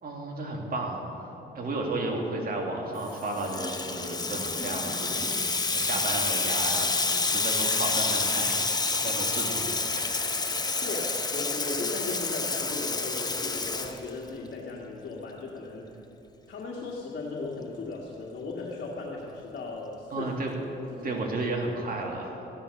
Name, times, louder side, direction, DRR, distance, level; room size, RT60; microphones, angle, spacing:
voice 1, 0.0-1.3 1.5-5.4 5.7-10.5 20.1-20.5 21.0-22.5, right 2 dB, 50° right, 0 dB, 2.7 m, -33 dB
Water tap faucet / Sink (filling or washing), 3.1-14.5, left 3 dB, 20° left, 1.0 m, -28 dB
voice 2, 10.8-15.9 16.5-20.3 20.7-21.2, left 3 dB, 60° left, -4 dB, 2.2 m, -37 dB
14.5 x 10.5 x 6.6 m, 2.9 s
cardioid pair, 90°, 20 cm